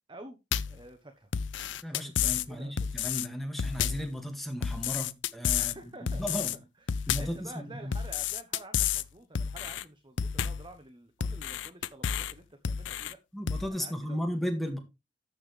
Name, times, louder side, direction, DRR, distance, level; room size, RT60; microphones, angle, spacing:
sound 1, 0.5-0.8 1.3-2.5 2.8-3.3 3.6-4.1 4.6-5.8 6.1-6.6 6.9-7.4 7.9-9.0 9.3-9.8 10.2-10.7 11.2-12.3 12.6-13.1 13.5-13.7, left 8 dB, 65° left, 0.5 m, -30 dB
voice 1, 0.7-1.3 1.8-2.9 5.6-6.2 6.8-13.2 13.7-14.3, right 2 dB, 25° right, 1.1 m, -49 dB
voice 2, 1.8-6.6 7.1-7.9 13.3-14.8, equal, ahead, 2.0 m, -35 dB
12.5 x 7.2 x 3.3 m
head